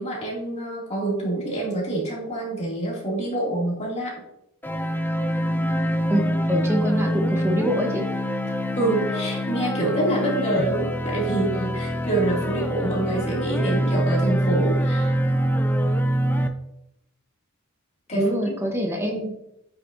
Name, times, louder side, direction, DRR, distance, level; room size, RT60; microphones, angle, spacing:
voice 1, 0.0-4.2 8.8-15.1 18.1-18.6 19.0-19.2, right 2 dB, 30° left, -4 dB, 2.5 m, -26 dB
sound 1, 4.6-16.5, equal, 10° left, 0.4 m, -25 dB
voice 2, 6.1-8.0 18.1-19.4, equal, 10° right, 1 dB, 1.0 m, -25 dB
8.5 x 6.5 x 2.7 m, 0.81 s
head